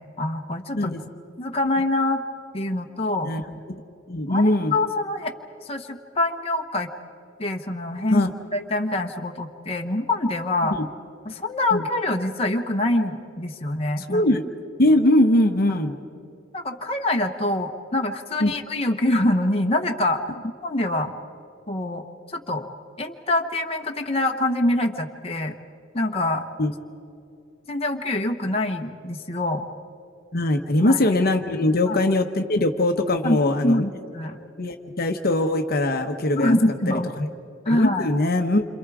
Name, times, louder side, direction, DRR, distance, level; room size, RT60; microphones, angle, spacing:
voice 1, 0.2-0.9 1.4-2.2 2.5-3.3 4.3-5.3 5.6-6.9 7.4-8.2 8.5-10.7 11.2-14.3 15.7-15.8 16.5-20.2 20.6-21.1 21.7-22.7 23.0-25.5 25.9-26.5 27.7-29.6 30.8-31.0 31.9-32.0 33.2-34.4 36.3-37.1 37.6-38.1, left 1 dB, 30° left, 3 dB, 1.1 m, -25 dB
voice 2, 3.2-3.8 4.1-4.7 8.1-8.3 10.7-10.9 11.7-11.8 14.0-14.4 14.8-15.9 18.4-18.5 26.6-26.7 30.3-33.9 34.6-36.5 37.2-37.3 37.7-38.7, left 1 dB, 50° left, 6 dB, 1.1 m, -21 dB
28.0 x 26.5 x 4.9 m, 2.7 s
head